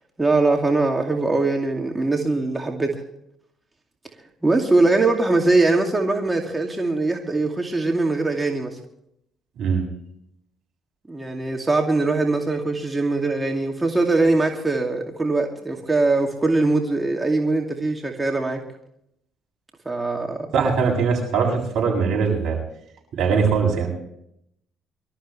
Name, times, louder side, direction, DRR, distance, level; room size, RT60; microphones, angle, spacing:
voice 1, 0.2-3.0 4.4-8.8 11.1-18.6 19.9-20.5, right 2 dB, 20° right, 2 dB, 2.4 m, -21 dB
voice 2, 20.5-22.6 23.2-23.9, right 5 dB, 70° right, 0 dB, 7.6 m, -21 dB
24.5 x 13.5 x 3.3 m, 0.75 s
hypercardioid pair, 60°, 0 cm